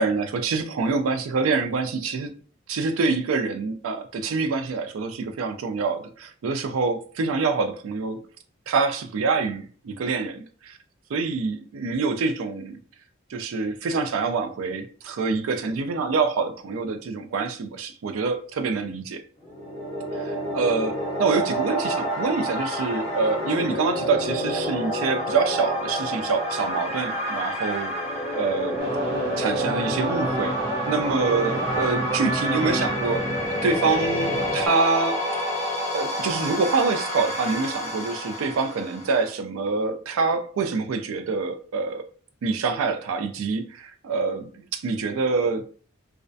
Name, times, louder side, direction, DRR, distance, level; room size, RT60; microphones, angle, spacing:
voice 1, 0.0-2.3 2.7-8.2 8.7-10.8 11.1-12.8 13.3-19.2 20.1-28.0 28.3-28.8 29.4-30.6 30.9-33.3 33.6-35.4 35.9-42.0 42.4-45.6, right 4 dB, 90° right, 0.4 m, -26 dB
sound 1, 19.4-39.3, equal, 30° left, 0.6 m, -29 dB
sound 2, 28.8-34.7, right 1 dB, 55° right, 0.7 m, -30 dB
2.3 x 2.1 x 2.5 m
head